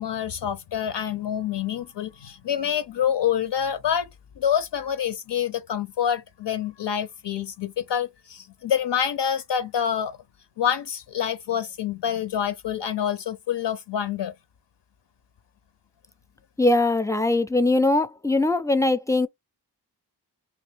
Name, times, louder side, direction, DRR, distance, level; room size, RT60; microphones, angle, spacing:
voice 1, 0.0-4.1 4.4-10.2 10.6-14.3, left 9 dB, 75° left, 0.5 m, -27 dB
voice 2, 16.6-19.3, left 2 dB, 10° left, 0.3 m, -21 dB
3.0 x 2.8 x 3.2 m
wide cardioid pair, 80°, 42 cm